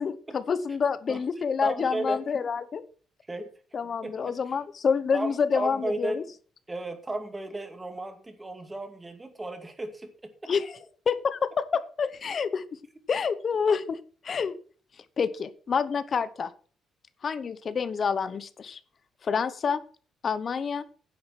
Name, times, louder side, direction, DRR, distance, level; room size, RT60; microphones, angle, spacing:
voice 1, 0.0-2.8 3.7-6.2 10.5-10.8 11.1-12.6 13.1-14.0 14.2-14.6 15.2-16.5 17.2-18.8 19.2-19.8 20.2-20.8, left 6 dB, 45° left, 14 dB, 0.9 m, -28 dB
voice 2, 1.6-2.2 3.3-3.5 4.0-4.4 5.1-6.2 6.7-10.5, right 2 dB, 20° right, 7 dB, 2.4 m, -34 dB
10.0 x 7.6 x 5.9 m, 0.41 s
cardioid pair, 90°, 0 cm